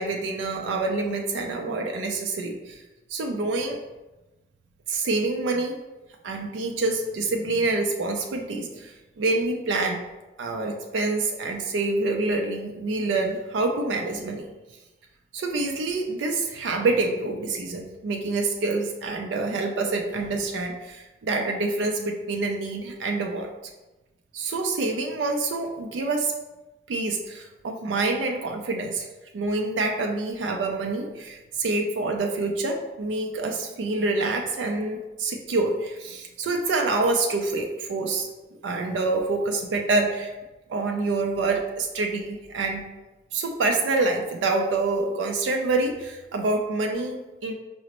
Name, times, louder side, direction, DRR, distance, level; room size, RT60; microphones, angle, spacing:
voice 1, 0.0-2.8 3.1-3.8 4.9-5.7 6.2-10.0 10.4-14.5 15.3-23.5 24.3-26.3 26.9-29.1 29.3-38.3 38.6-40.3 40.7-42.8 43.3-47.5, right 3 dB, 85° right, 2 dB, 0.4 m, -26 dB
4.9 x 2.0 x 2.9 m, 1.1 s
head